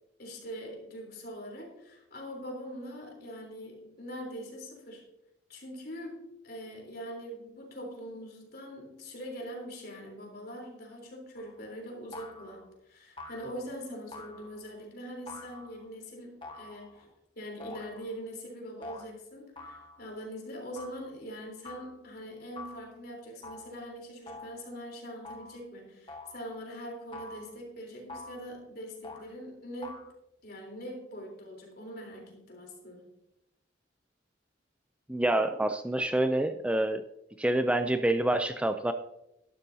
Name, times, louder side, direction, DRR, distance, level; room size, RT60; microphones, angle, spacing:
voice 1, 0.2-5.0 5.5-17.1 17.4-30.1 30.4-33.1, equal, 55° left, 0 dB, 3.6 m, -43 dB
sound 1, 11.4-11.7 12.1-12.7 13.2-13.6 14.1-14.7 15.3-15.9 16.4-17.1 17.6-18.2 18.8-19.1 19.6-20.1 20.8-21.1 21.7-22.0 22.6-22.9 23.4-23.8 24.3-24.7 25.3-25.6 26.1-26.5 27.1-27.6 28.1-28.5 29.0-29.3 29.8-30.1, left 2 dB, 25° left, 1.5 m, -46 dB
voice 2, 35.1-37.0 37.4-38.9, right 1 dB, 5° right, 8 dB, 0.4 m, -27 dB
12.0 x 12.0 x 2.7 m, 0.86 s
head